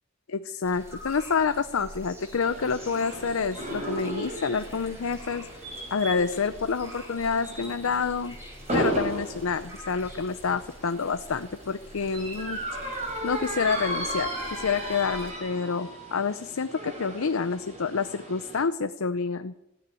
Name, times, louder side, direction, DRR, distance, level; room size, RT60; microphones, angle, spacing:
voice 1, 0.3-5.5 5.9-8.4 8.7-12.6 12.9-19.5, left 5 dB, 90° left, 10 dB, 0.6 m, -28 dB
sound 1, 0.6-15.3, equal, 15° right, 6.4 m, -46 dB
sound 2, 2.4-18.6, right 1 dB, 35° right, 5.6 m, -36 dB
14.5 x 9.7 x 8.5 m, 0.87 s
head